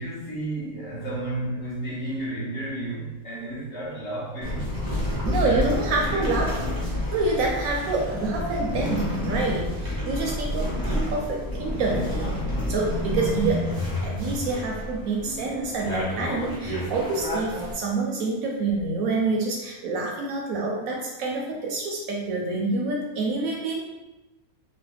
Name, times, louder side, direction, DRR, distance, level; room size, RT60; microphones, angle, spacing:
voice 1, 0.0-4.7 5.4-6.5 15.2-15.5, right 1 dB, 55° left, -7 dB, 1.0 m, -33 dB
sound 1, 4.4-17.7, left 1 dB, 30° right, 0.4 m, -29 dB
voice 2, 5.2-6.6 7.1-13.6 14.0-23.8, right 3 dB, 70° right, -1 dB, 0.9 m, -27 dB
3.0 x 2.2 x 3.3 m, 1.1 s
omnidirectional pair, 1.6 m